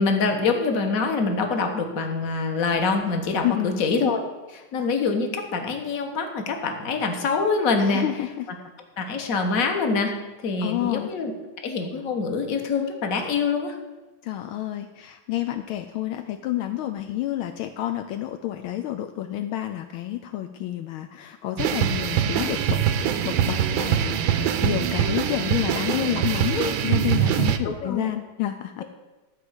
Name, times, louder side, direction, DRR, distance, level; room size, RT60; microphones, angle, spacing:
voice 1, 0.0-8.1 9.0-10.1 10.4-11.3 11.6-13.7 27.6-28.1, left 4 dB, 45° left, 4 dB, 1.5 m, -25 dB
voice 2, 3.4-3.8 7.8-8.5 10.6-11.1 14.2-28.8, left 13 dB, 75° left, 7 dB, 1.4 m, -29 dB
sound 1, 21.6-27.6, right 9 dB, 70° right, 1.4 m, -23 dB
13.0 x 4.9 x 8.1 m, 1.2 s
omnidirectional pair, 2.4 m